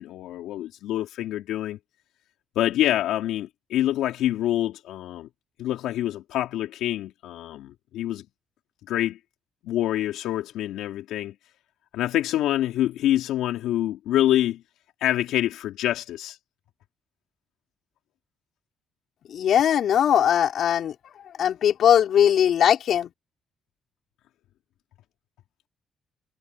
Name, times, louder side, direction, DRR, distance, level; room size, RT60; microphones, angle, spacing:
voice 1, 0.0-1.8 2.6-5.3 5.6-8.2 8.9-9.2 9.6-11.3 11.9-14.6 15.0-16.4, left 13 dB, 90° left, 3.9 m, -26 dB
voice 2, 19.3-20.9 21.4-23.1, left 9 dB, 65° left, 5.4 m, -20 dB
cardioid pair, 90°, 0 cm